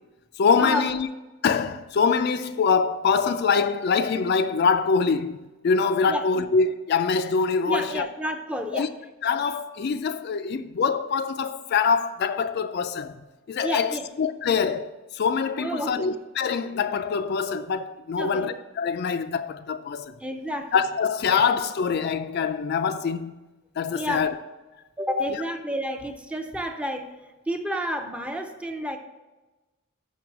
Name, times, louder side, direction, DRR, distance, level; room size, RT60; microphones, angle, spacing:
voice 1, 0.4-1.1 1.4-8.1 8.7-8.9 9.2-13.1 13.5-14.9 15.1-20.1 20.7-23.3 23.8-24.3, left 5 dB, 50° left, 0.3 m, -24 dB
voice 2, 6.1-6.5 7.7-8.9 13.6-14.1 15.6-16.1 18.2-18.5 20.2-20.8 23.9-24.2 25.0-27.1 27.5-29.0, equal, 5° right, 0.5 m, -30 dB
6.1 x 5.8 x 5.9 m
head